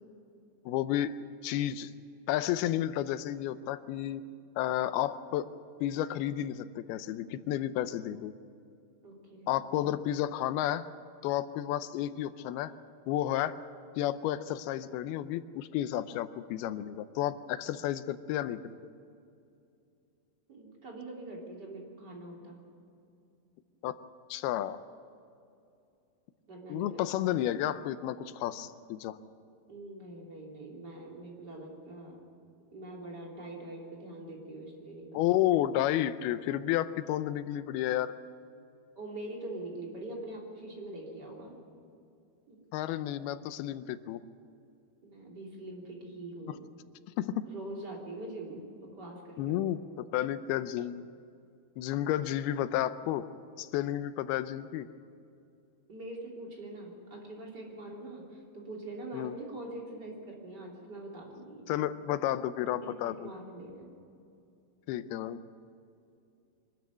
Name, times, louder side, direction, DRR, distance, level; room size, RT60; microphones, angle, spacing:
voice 1, 0.7-1.1 1.4-1.9 2.3-4.2 4.6-5.5 5.8-8.3 9.5-10.8 11.2-12.7 13.1-13.6 14.0-18.6 23.8-24.0 24.3-24.8 26.7-29.2 35.1-38.2 42.7-44.2 46.5-46.6 47.2-47.4 49.4-51.0 51.8-53.3 53.6-54.9 59.1-59.4 61.7-63.3 64.9-65.4, left 12 dB, 85° left, 13 dB, 2.6 m, -31 dB
voice 2, 9.0-9.5 9.8-9.9 20.5-22.6 26.5-27.0 28.5-28.6 29.7-32.2 32.7-35.4 38.9-41.5 42.5-42.6 45.0-46.6 47.4-49.7 55.9-61.6 62.8-63.9 65.0-65.1, right 2 dB, 25° right, -2 dB, 3.4 m, -43 dB
24.0 x 13.5 x 9.4 m, 2.6 s
omnidirectional pair, 4.4 m